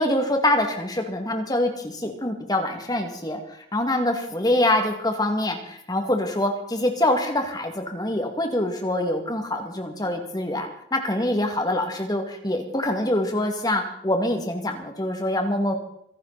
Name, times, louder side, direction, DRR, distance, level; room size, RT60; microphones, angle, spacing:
voice 1, 0.0-3.4 3.7-15.8, left 1 dB, 20° left, 4 dB, 2.4 m, -25 dB
26.0 x 11.5 x 4.2 m, 0.73 s
head